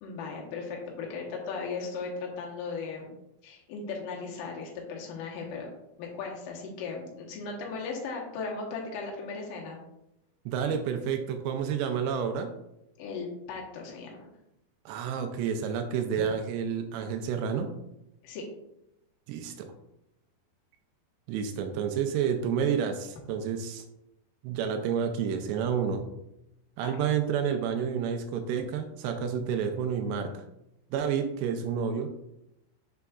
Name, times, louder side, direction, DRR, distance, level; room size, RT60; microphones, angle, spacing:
voice 1, 0.0-3.1 3.4-5.7 6.0-9.8 13.0-14.3 18.2-18.4 26.8-26.9, left 4 dB, 75° left, -2 dB, 2.0 m, -37 dB
voice 2, 10.5-12.5 14.9-17.7 19.3-19.7 21.3-23.8 24.4-26.0 26.8-30.3 30.9-32.1, right 7 dB, 85° right, 6 dB, 2.5 m, -29 dB
6.6 x 6.1 x 2.3 m, 0.86 s
omnidirectional pair, 5.3 m